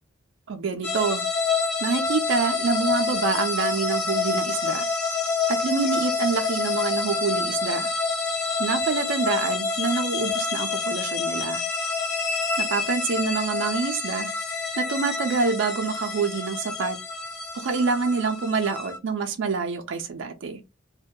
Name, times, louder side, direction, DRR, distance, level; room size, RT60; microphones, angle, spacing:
voice 1, 0.5-1.2 1.8-4.8 5.5-7.9 8.6-11.6 12.6-14.3 14.8-17.0 17.5-20.6, right 4 dB, 60° right, 0.4 m, -26 dB
sound 1, 0.8-19.0, left 4 dB, 50° left, 0.6 m, -27 dB
2.6 x 2.1 x 2.2 m
head